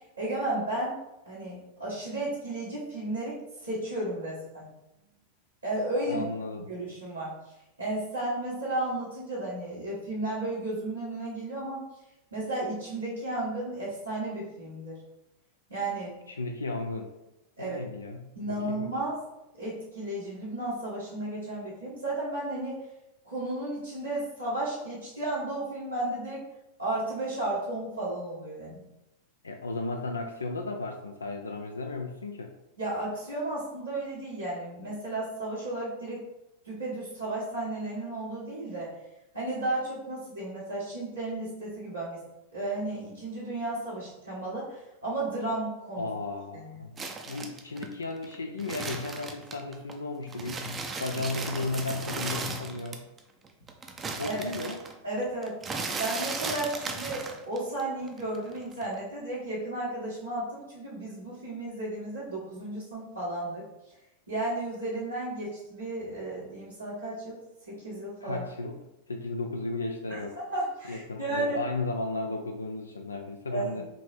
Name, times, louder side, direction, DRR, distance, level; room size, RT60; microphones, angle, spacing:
voice 1, 0.2-0.9 1.2-4.7 5.6-6.3 6.7-11.8 12.3-15.0 15.7-16.2 17.6-17.8 18.3-19.2 19.6-22.8 23.2-26.4 26.8-28.8 32.8-36.2 36.6-38.9 39.3-42.2 42.5-46.1 46.5-46.8 54.2-54.5 55.0-55.6 56.0-63.6 64.3-67.4 67.7-68.4 70.1-71.6 73.5-73.9, right 2 dB, 85° right, -12 dB, 1.4 m, -33 dB
voice 2, 6.1-6.7 16.3-17.1 17.6-18.9 29.4-32.5 46.0-47.0 47.3-53.1 54.2-54.9 68.2-68.8 69.1-70.4 70.9-73.9, left 3 dB, 75° left, 4 dB, 0.3 m, -34 dB
sound 1, 47.0-49.9 50.3-53.2 53.4-57.8 58.1-59.0, right 4 dB, 20° right, 0.5 m, -36 dB
5.1 x 2.8 x 3.2 m, 0.93 s
figure-of-eight pair, 90°, 0 cm